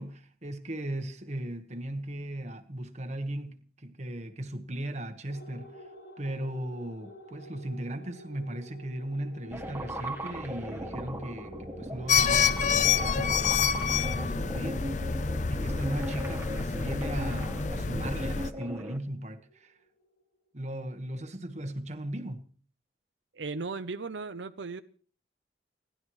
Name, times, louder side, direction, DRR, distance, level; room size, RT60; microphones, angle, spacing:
voice 1, 0.0-5.8 6.2-15.1 15.5-19.7 20.5-22.5, right 1 dB, 40° right, 1.4 m, -37 dB
sound 1, 5.3-20.1, equal, 85° left, 4.6 m, -51 dB
sound 2, 9.5-19.0, right 1 dB, 10° right, 1.3 m, -38 dB
sound 3, 12.1-18.5, left 6 dB, 40° left, 0.6 m, -27 dB
voice 2, 23.3-24.8, right 4 dB, 80° right, 0.7 m, -36 dB
29.0 x 12.0 x 3.2 m
head